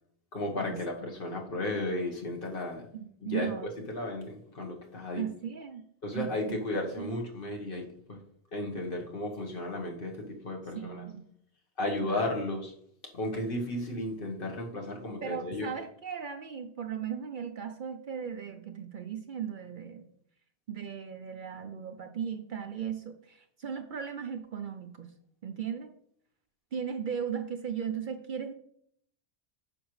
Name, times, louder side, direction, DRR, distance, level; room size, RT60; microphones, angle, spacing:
voice 1, 0.3-2.8 3.2-3.5 3.9-5.2 6.0-8.2 8.5-11.0 11.8-12.7 13.1-15.7, left 1 dB, 55° left, 1 dB, 1.4 m, -34 dB
voice 2, 2.9-3.7 5.1-5.8 6.1-6.6 7.0-7.2 10.7-11.2 12.0-12.3 15.2-20.0 20.7-25.1 25.4-25.9 26.7-28.5, right 8 dB, 55° right, 7 dB, 0.7 m, -37 dB
8.8 x 6.0 x 3.1 m, 0.68 s
omnidirectional pair, 1.1 m